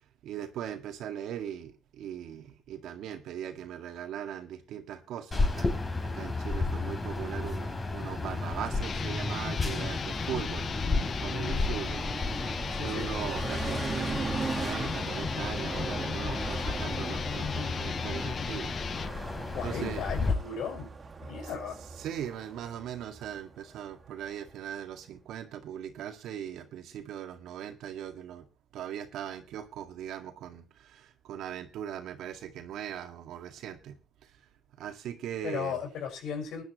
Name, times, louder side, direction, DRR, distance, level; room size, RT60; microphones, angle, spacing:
voice 1, 0.2-12.0 12.3-14.3 14.6-18.7 19.6-20.0 21.4-21.5 22.0-28.4 28.7-34.0 34.8-35.8, right 9 dB, 85° right, 7 dB, 2.0 m, -40 dB
sound 1, 5.3-20.3, left 3 dB, 30° left, 4.3 m, -33 dB
sound 2, 7.4-24.6, right 4 dB, 35° right, 2.5 m, -40 dB
sound 3, 8.7-19.1, left 6 dB, 50° left, 0.6 m, -37 dB
voice 2, 19.5-20.9 21.2-21.8 35.4-36.6, left 6 dB, 85° left, 3 dB, 5.9 m, -36 dB
21.0 x 10.5 x 3.1 m, 0.32 s
cardioid pair, 90°, 0 cm